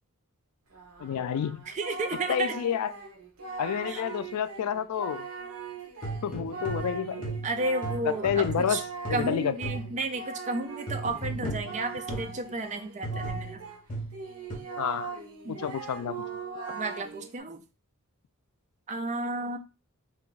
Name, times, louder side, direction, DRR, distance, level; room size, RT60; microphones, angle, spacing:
Singing, 0.7-13.8 14.1-17.3, right 5 dB, 70° right, 0.9 m, -40 dB
voice 1, 1.0-1.6 2.3-2.9 3.6-5.3 6.2-7.3 8.0-8.8 9.1-9.5 11.4-11.5 14.8-15.1 15.5-16.3, left 8 dB, 90° left, 0.3 m, -29 dB
voice 2, 1.7-2.5 3.9-4.0 7.4-8.8 9.1-13.6 15.4-15.6 16.7-17.6 18.9-19.6, right 2 dB, 30° right, 0.4 m, -32 dB
sound 1, 6.0-10.1 10.9-12.4 13.0-14.6, right 2 dB, 35° left, 0.9 m, -36 dB
2.6 x 2.2 x 3.9 m
head